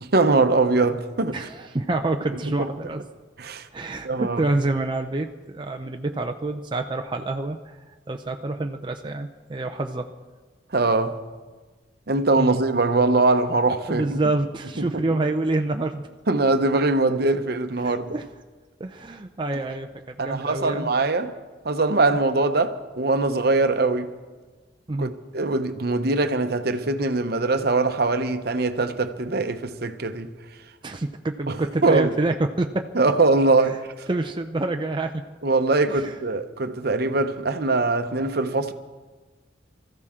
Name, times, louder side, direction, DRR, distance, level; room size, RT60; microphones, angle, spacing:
voice 1, 0.1-1.5 2.5-2.7 3.4-3.7 4.0-4.4 10.7-11.2 12.1-14.2 14.8-15.2 16.3-18.2 20.2-21.3 21.6-24.1 25.0-30.3 31.5-32.1 32.9-34.1 35.4-38.7, right 3 dB, 55° right, 0.9 m, -22 dB
voice 2, 1.3-3.0 3.7-7.8 8.1-10.1 12.4-12.6 13.9-16.0 17.8-18.2 18.8-20.9 24.9-25.1 30.8-32.9 34.1-35.2 35.9-36.1, right 2 dB, 25° right, 0.5 m, -27 dB
24.5 x 14.5 x 3.7 m
head